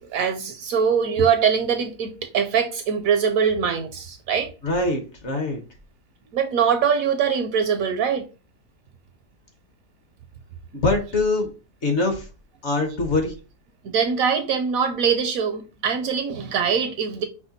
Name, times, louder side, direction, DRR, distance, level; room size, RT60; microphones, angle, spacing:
voice 1, 0.0-4.5 6.3-8.3 13.8-17.2, right 7 dB, 70° right, 0.9 m, -22 dB
voice 2, 4.6-5.6 10.7-11.5 11.8-12.3 12.6-13.3, left 2 dB, 50° left, 1.0 m, -23 dB
4.8 x 2.2 x 3.9 m
omnidirectional pair, 1.7 m